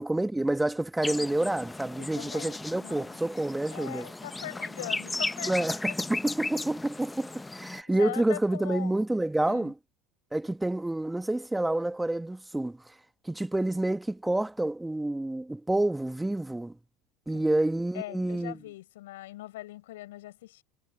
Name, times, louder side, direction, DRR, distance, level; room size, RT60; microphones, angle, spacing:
voice 1, 0.0-4.1 5.5-9.7 10.3-12.8 13.2-16.7 17.3-18.6, right 1 dB, 10° right, 1.7 m, -28 dB
sound 1, 1.0-7.8, left 2 dB, 10° left, 1.1 m, -36 dB
voice 2, 2.0-3.2 3.7-5.6 5.9-6.0 7.7-8.9 9.5-9.7 17.3-17.5 17.9-20.6, left 16 dB, 75° left, 7.6 m, -41 dB
hypercardioid pair, 75°, 0 cm